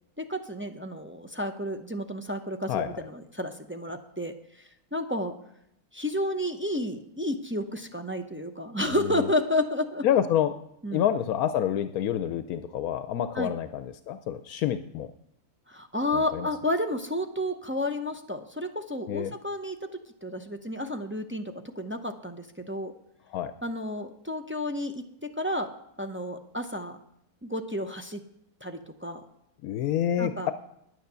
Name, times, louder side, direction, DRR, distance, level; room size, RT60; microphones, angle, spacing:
voice 1, 0.2-4.3 4.9-5.3 5.9-10.1 10.8-11.0 13.3-13.5 15.7-19.9 20.2-22.9 23.6-25.0 25.4-25.7 26.0-27.0 27.4-28.2 28.6-29.2 30.2-30.5, left 1 dB, 15° right, 4 dB, 0.4 m, -31 dB
voice 2, 2.7-3.0 9.0-9.3 10.0-10.5 10.9-15.1 16.1-16.5 19.1-19.3 23.3-23.5 29.6-30.5, left 10 dB, 80° left, 11 dB, 1.1 m, -28 dB
10.0 x 9.2 x 6.8 m, 0.78 s
omnidirectional pair, 1.5 m